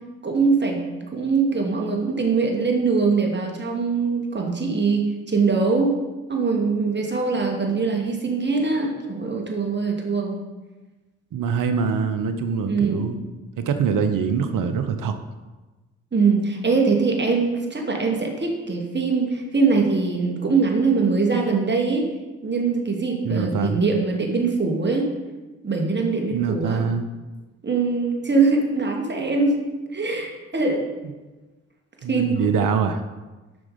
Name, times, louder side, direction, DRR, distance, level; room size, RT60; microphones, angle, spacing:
voice 1, 0.2-0.8 1.1-5.9 6.3-10.4 12.7-13.1 16.1-22.1 22.4-25.1 25.6-26.9 27.6-29.6 29.9-30.8 32.1-32.3, right 4 dB, 30° right, 1 dB, 2.7 m, -22 dB
voice 2, 11.3-13.2 13.6-15.2 23.2-23.8 26.3-27.1 32.0-33.0, right 6 dB, 65° right, 9 dB, 1.0 m, -23 dB
11.0 x 6.2 x 5.3 m, 1.2 s
hypercardioid pair, 40°, 35 cm